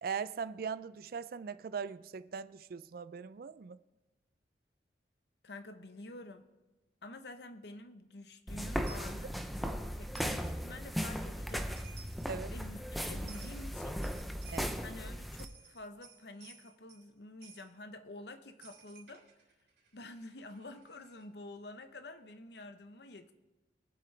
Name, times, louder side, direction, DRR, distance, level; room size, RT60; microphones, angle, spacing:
voice 1, 0.0-3.8 12.3-12.5 14.5-14.8, right 6 dB, 55° right, 0.4 m, -40 dB
voice 2, 5.4-6.5 7.0-9.4 10.0-11.7 12.5-14.0 14.8-19.2 19.9-23.3, left 2 dB, 65° left, 0.9 m, -49 dB
sound 1, 8.5-15.4, equal, ahead, 0.5 m, -37 dB
Coin (dropping), 8.9-9.1 10.1-10.4 11.5-11.6 11.8-12.3 13.3-13.6 14.0-14.8 15.2-17.1 17.4-17.7 18.6-21.2, right 6 dB, 70° right, 3.4 m, -56 dB
22.5 x 7.6 x 3.3 m
head